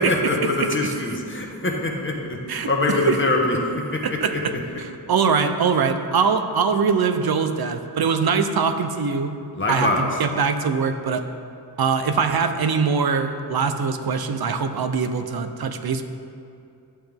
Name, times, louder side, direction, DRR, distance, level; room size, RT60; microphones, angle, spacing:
voice 1, 0.0-4.6 9.5-10.2, left 2 dB, 25° left, 0 dB, 1.2 m, -24 dB
voice 2, 2.5-3.2 4.0-4.5 5.1-9.3 9.7-11.2 11.8-16.0, right 5 dB, 55° right, 8 dB, 0.7 m, -22 dB
11.0 x 7.9 x 3.5 m, 2.6 s
wide cardioid pair, 125°, 43 cm